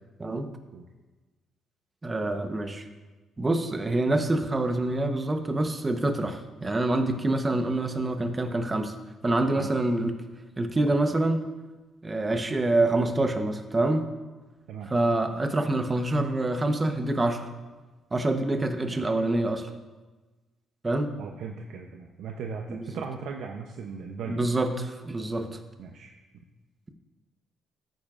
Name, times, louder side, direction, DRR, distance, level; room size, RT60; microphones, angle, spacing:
voice 1, 2.0-2.8 3.4-8.9 9.2-10.2 10.6-11.4 12.0-14.1 14.9-17.5 18.1-19.7 20.8-21.1 22.7-22.9 24.3-25.6, right 2 dB, 25° right, 6 dB, 0.9 m, -26 dB
voice 2, 21.2-24.4 25.8-26.1, right 5 dB, 80° right, 2 dB, 0.6 m, -38 dB
14.0 x 9.1 x 2.5 m, 1.2 s
cardioid pair, 90°, 0 cm